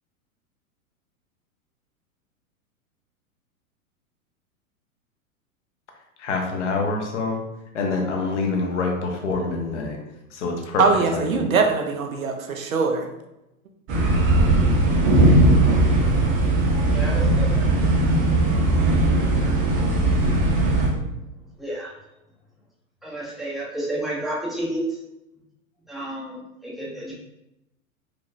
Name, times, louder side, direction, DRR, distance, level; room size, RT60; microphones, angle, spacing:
voice 1, 6.2-7.4 7.7-10.0 10.3-10.8 11.1-11.5, left 3 dB, 55° left, 1 dB, 1.0 m, -26 dB
voice 2, 10.8-13.1, right 4 dB, 70° right, 3 dB, 0.8 m, -22 dB
sound 1, 13.9-20.9, right 2 dB, 30° right, 0.8 m, -18 dB
voice 3, 16.8-17.7 21.6-21.9 23.0-24.8 25.9-27.1, right 1 dB, ahead, -6 dB, 0.7 m, -31 dB
4.6 x 3.0 x 2.6 m, 0.91 s
figure-of-eight pair, 100°, 43 cm